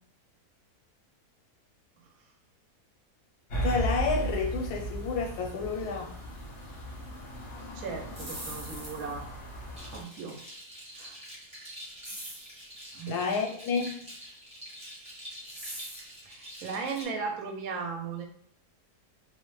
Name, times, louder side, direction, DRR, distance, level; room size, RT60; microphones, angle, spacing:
sound 1, 3.5-10.0, right 2 dB, 55° left, 0.7 m, -36 dB
voice 1, 3.6-6.1 13.1-14.0, left 5 dB, 85° left, 1 dB, 1.2 m, -30 dB
voice 2, 7.6-9.3 9.9-10.4 10.9-11.2 12.9-13.2 16.2-18.3, right 5 dB, 70° right, 3 dB, 1.0 m, -37 dB
sound 2, 8.1-9.2 12.0-12.6 15.4-16.1, right 1 dB, 40° right, 0.9 m, -42 dB
sound 3, 9.7-17.0, equal, 5° right, 0.6 m, -46 dB
2.6 x 2.0 x 3.0 m, 0.65 s
omnidirectional pair, 1.6 m